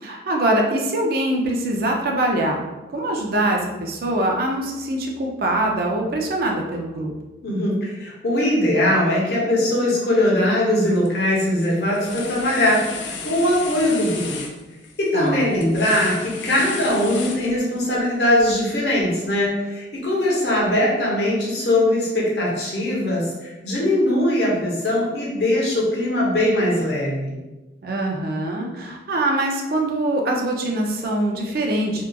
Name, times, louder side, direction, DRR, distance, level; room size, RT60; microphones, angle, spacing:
voice 1, 0.0-2.6 2.9-7.1 15.1-15.5 27.8-32.0, right 1 dB, 55° right, 1 dB, 0.4 m, -23 dB
voice 2, 7.4-14.4 15.0-27.4, left 1 dB, 60° left, -4 dB, 0.7 m, -21 dB
sound 1, 10.8-11.1 11.4-17.9, left 5 dB, 75° left, 0.3 m, -34 dB
2.8 x 2.3 x 2.2 m, 1.1 s
head